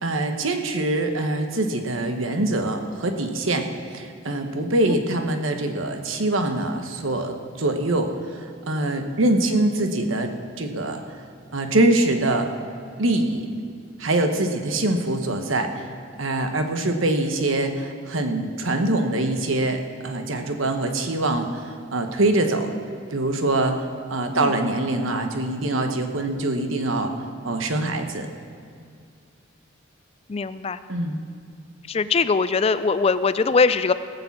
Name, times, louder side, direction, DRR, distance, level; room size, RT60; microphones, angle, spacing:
voice 1, 0.0-3.7 3.9-8.1 8.7-10.3 10.6-11.0 11.5-12.5 13.0-13.4 14.0-15.8 16.2-22.7 23.1-23.8 24.1-27.1 27.4-28.3 30.9-31.2, right 2 dB, 80° right, 5 dB, 1.1 m, -24 dB
voice 2, 30.3-30.8 31.9-33.9, left 4 dB, 30° left, 13 dB, 0.3 m, -21 dB
17.5 x 6.9 x 7.2 m, 2.2 s
head